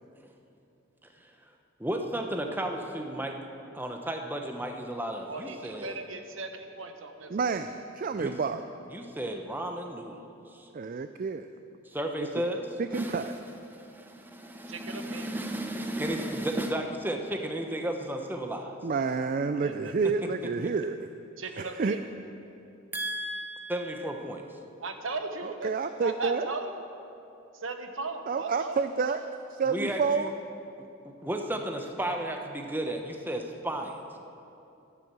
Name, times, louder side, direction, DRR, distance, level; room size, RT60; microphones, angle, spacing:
voice 1, 1.8-3.4 3.7-6.0 8.2-8.3 8.9-10.7 11.9-12.7 12.9-13.3 13.7-18.8 22.9-24.4 29.7-30.3 31.0-34.2, right 1 dB, 10° right, 3 dB, 0.8 m, -33 dB
voice 2, 5.3-7.3 14.7-15.3 19.6-20.1 21.4-22.0 24.8-25.7 26.0-26.7 27.5-28.8, right 3 dB, 70° right, 6 dB, 1.1 m, -37 dB
voice 3, 7.3-8.7 10.7-11.5 12.2-12.3 12.8-13.3 18.8-21.1 21.6-22.0 25.4-26.5 28.3-30.3, right 4 dB, 40° right, 10 dB, 0.4 m, -29 dB
11.5 x 11.0 x 7.4 m, 2.8 s
head